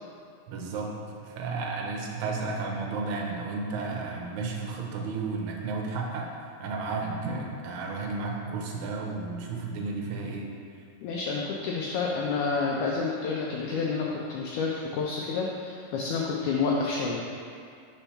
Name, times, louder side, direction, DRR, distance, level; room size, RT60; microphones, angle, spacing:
voice 1, 0.5-0.9 1.2-6.3 6.6-10.5, right 3 dB, 80° right, -1 dB, 1.8 m, -33 dB
voice 2, 11.0-17.3, left 4 dB, 85° left, -3 dB, 1.7 m, -29 dB
4.5 x 4.4 x 5.5 m, 2.4 s
omnidirectional pair, 4.0 m